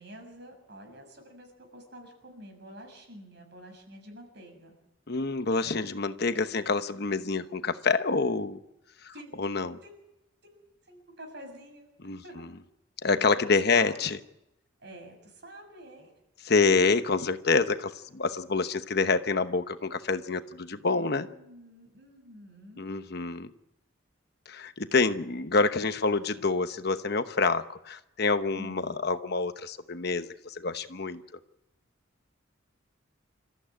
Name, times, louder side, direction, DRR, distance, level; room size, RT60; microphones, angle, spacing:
voice 1, 0.0-4.7 9.1-9.4 9.8-10.0 10.4-11.9 12.2-12.5 13.3-13.4 13.6-14.0 14.8-16.1 21.0-22.9 28.5-28.8, right 1 dB, 55° right, 4 dB, 7.0 m, -47 dB
voice 2, 5.1-8.6 9.0-9.1 9.4-9.8 12.0-12.5 13.0-14.2 16.4-21.3 22.8-23.5 24.5-31.2, left 4 dB, 55° left, 10 dB, 1.0 m, -27 dB
28.0 x 14.5 x 8.9 m, 0.88 s
head